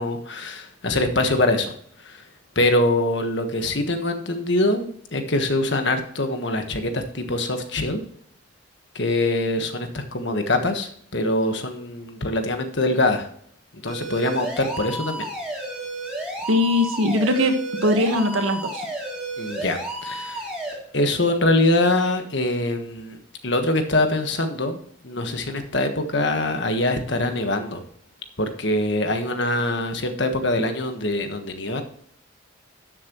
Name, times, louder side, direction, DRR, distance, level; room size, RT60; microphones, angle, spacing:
voice 1, 0.0-1.7 2.0-2.2 2.5-8.0 8.9-13.3 13.8-15.2 19.4-20.5 20.9-27.8 28.4-31.8, left 1 dB, 60° left, 6 dB, 1.4 m, -23 dB
sound 1, 13.9-20.7, right 1 dB, 5° right, 3.0 m, -32 dB
voice 2, 16.5-17.5 17.8-18.8, left 1 dB, 80° right, 6 dB, 1.4 m, -20 dB
12.5 x 7.5 x 3.1 m, 0.63 s
head